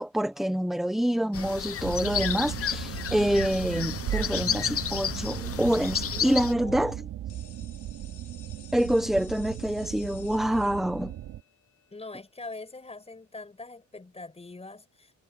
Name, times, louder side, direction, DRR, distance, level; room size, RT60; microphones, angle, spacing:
voice 1, 0.0-7.0 8.7-11.1, equal, ahead, 1.1 m, -26 dB
sound 1, 1.3-6.5, left 9 dB, 50° left, 1.2 m, -32 dB
sound 2, 1.8-11.4, right 12 dB, 80° right, 2.9 m, -37 dB
voice 2, 6.1-6.9 11.9-15.1, left 3 dB, 20° left, 5.9 m, -43 dB
sound 3, 7.3-12.9, left 9 dB, 70° left, 6.5 m, -54 dB
cardioid pair, 90°, 30 cm